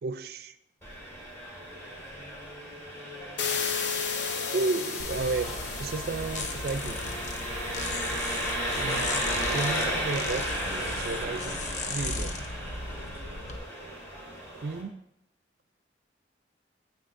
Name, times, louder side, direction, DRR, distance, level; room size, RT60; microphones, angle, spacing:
voice 1, 0.0-0.6 4.5-7.2 8.8-9.1 9.5-11.6 11.9-12.4 14.5-14.9, right 3 dB, 55° right, 12 dB, 0.4 m, -33 dB
Engine, 0.8-14.8, equal, 15° left, 1.6 m, -34 dB
sound 1, 3.4-10.2, left 6 dB, 80° left, 0.8 m, -36 dB
sound 2, 5.0-13.6, left 2 dB, 40° left, 0.6 m, -37 dB
9.0 x 7.0 x 2.6 m, 0.76 s
head